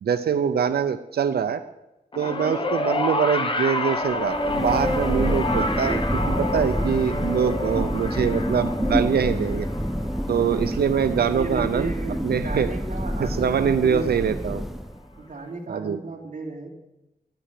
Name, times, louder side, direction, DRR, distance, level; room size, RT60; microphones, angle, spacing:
voice 1, 0.0-1.6 2.2-9.7 10.3-11.9 12.2-12.7 13.2-14.6 15.7-16.0, right 7 dB, 90° right, 10 dB, 0.6 m, -24 dB
sound 1, 2.1-12.6 13.6-13.7, left 2 dB, 35° left, 1.2 m, -29 dB
Thunder, 4.1-15.2, equal, ahead, 0.4 m, -28 dB
voice 2, 11.3-14.5 15.1-16.7, right 3 dB, 55° right, -3 dB, 2.9 m, -34 dB
13.0 x 9.9 x 7.6 m, 0.95 s
wide cardioid pair, 110°, 16 cm